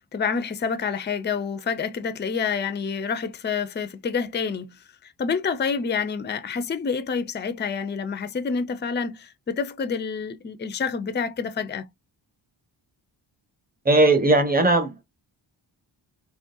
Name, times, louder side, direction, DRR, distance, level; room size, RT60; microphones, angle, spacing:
voice 1, 0.0-11.9, left 5 dB, 25° left, 0.5 m, -28 dB
voice 2, 13.8-15.0, right 2 dB, 20° right, 1.0 m, -18 dB
3.7 x 3.3 x 2.6 m
wide cardioid pair, 145°, 46 cm